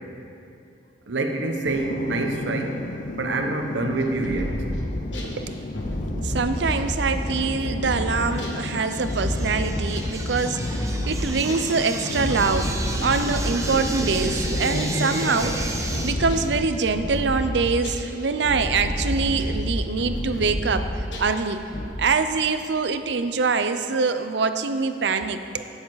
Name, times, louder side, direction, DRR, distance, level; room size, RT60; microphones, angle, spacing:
voice 1, 1.1-2.8 3.1-4.7, right 2 dB, 90° right, 4 dB, 1.0 m, -26 dB
sound 1, 1.7-16.7, left 2 dB, 45° left, 0.5 m, -34 dB
sound 2, 4.0-5.3 5.7-11.7 12.1-21.4 21.7-21.8, equal, 85° left, 1.5 m, -29 dB
voice 2, 6.2-12.7 13.0-20.9 21.2-21.6 22.0-25.6, right 4 dB, 70° right, 9 dB, 0.6 m, -24 dB
sound 3, 8.1-16.1, right 2 dB, 20° right, 0.8 m, -33 dB
16.5 x 7.1 x 4.0 m, 2.7 s
head